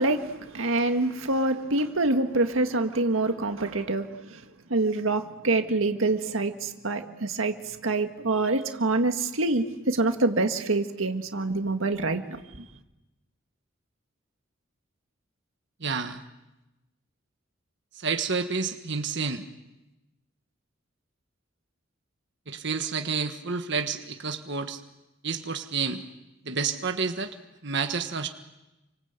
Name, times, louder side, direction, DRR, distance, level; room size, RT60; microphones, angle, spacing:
voice 1, 0.0-4.4 4.7-12.2 12.6-12.7, right 2 dB, 90° right, 6 dB, 1.8 m, -26 dB
voice 2, 15.8-16.2 17.9-19.4 22.5-24.8 25.2-26.0 26.4-27.3 27.6-28.3, right 5 dB, 60° right, 6 dB, 1.5 m, -29 dB
29.0 x 25.5 x 8.1 m, 0.99 s
head